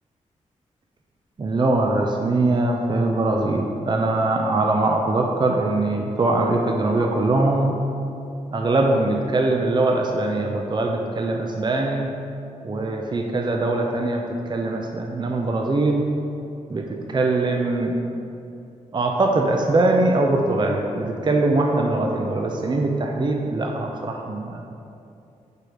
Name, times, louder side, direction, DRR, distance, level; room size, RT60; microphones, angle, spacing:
voice 1, 1.4-7.7 8.5-12.1 12.6-14.2 14.5-16.0 16.7-17.9 18.9-24.7, right 2 dB, 35° right, 1 dB, 0.6 m, -22 dB
4.8 x 4.6 x 5.0 m, 2.6 s
cardioid pair, 55°, 14 cm